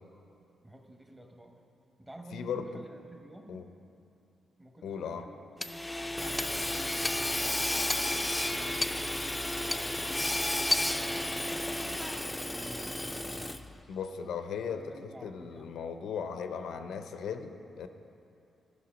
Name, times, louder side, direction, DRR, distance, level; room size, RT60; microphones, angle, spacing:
voice 1, 0.6-1.6 2.0-3.7 4.6-8.8 9.6-11.9 12.5-13.2 14.7-15.7, right 1 dB, 15° right, 3 dB, 1.0 m, -51 dB
voice 2, 2.3-2.8 3.5-3.7 4.8-5.3 13.9-17.9, left 6 dB, 80° left, 8 dB, 0.5 m, -37 dB
Hammer / Sawing, 5.6-13.8, left 1 dB, 10° left, 0.4 m, -32 dB
12.5 x 5.6 x 5.0 m, 2.7 s
cardioid pair, 80°, 0 cm